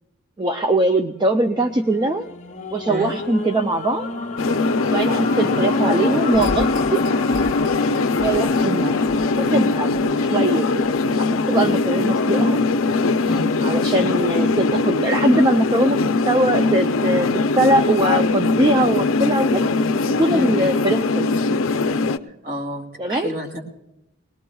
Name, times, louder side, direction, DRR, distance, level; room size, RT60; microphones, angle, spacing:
voice 1, 0.4-2.3 2.7-4.1 4.9-7.0 8.2-9.0 9.4-10.8 11.2-12.6 13.6-16.0 16.2-19.7 20.1-21.3 23.0-23.3, right 1 dB, 20° right, 7 dB, 0.4 m, -21 dB
sound 1, 1.3-11.6 12.2-12.3, left 3 dB, 35° left, 0.7 m, -30 dB
sound 2, 4.4-22.2, left 3 dB, 70° left, 0.5 m, -21 dB
voice 2, 9.8-10.2 11.6-12.0 13.2-13.5 20.3-20.5 22.4-23.6, equal, 45° right, 0 dB, 2.5 m, -30 dB
21.5 x 19.0 x 2.3 m, 0.92 s
head